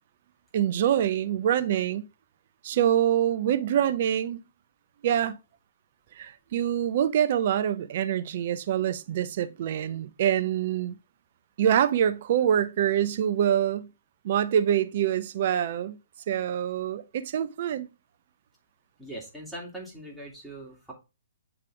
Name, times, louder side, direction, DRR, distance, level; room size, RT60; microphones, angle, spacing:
voice 1, 0.5-2.0 2.6-4.4 5.0-5.4 6.2-11.0 11.6-13.9 14.2-16.0 16.3-17.9, right 10 dB, 50° right, 0.7 m, -25 dB
voice 2, 19.0-20.9, right 1 dB, ahead, 2.2 m, -41 dB
8.3 x 3.4 x 3.3 m
hypercardioid pair, 130°, 0 cm